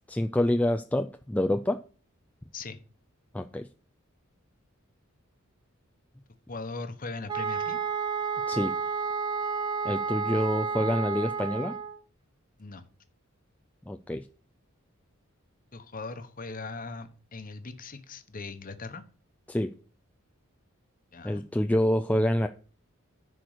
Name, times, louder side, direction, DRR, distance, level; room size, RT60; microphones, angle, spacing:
voice 1, 0.0-1.8 3.3-3.7 8.5-8.7 9.8-11.8 13.9-14.3 19.5-19.7 21.2-22.5, left 1 dB, 5° left, 7 dB, 0.4 m, -27 dB
voice 2, 6.5-7.8 12.6-12.8 15.7-19.0 21.1-21.4, left 3 dB, 40° left, 9 dB, 1.1 m, -39 dB
sound 1, 7.3-12.0, right 5 dB, 20° right, 1.1 m, -31 dB
10.5 x 4.7 x 6.6 m, 0.39 s
head